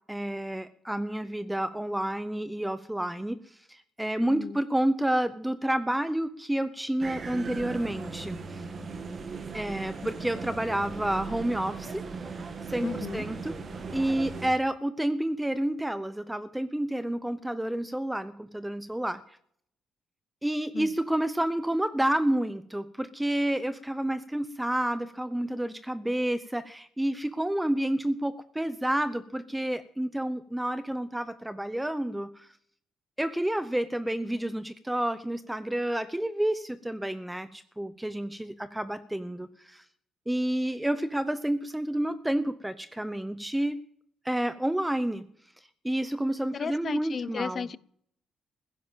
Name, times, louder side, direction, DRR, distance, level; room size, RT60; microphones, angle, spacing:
voice 1, 0.1-8.6 9.5-12.0 12.7-13.6 13.9-19.2 20.4-32.5 33.2-39.8 40.3-43.8 44.2-45.2 45.8-47.7, right 1 dB, 5° right, 14 dB, 0.8 m, -30 dB
voice 2, 4.2-4.6 12.8-13.2 20.7-20.9 46.5-47.8, left 6 dB, 45° left, 21 dB, 0.6 m, -34 dB
sound 1, 7.0-14.5, right 4 dB, 45° right, 1.9 m, -38 dB
15.5 x 10.5 x 7.4 m, 0.64 s
cardioid pair, 90°, 0 cm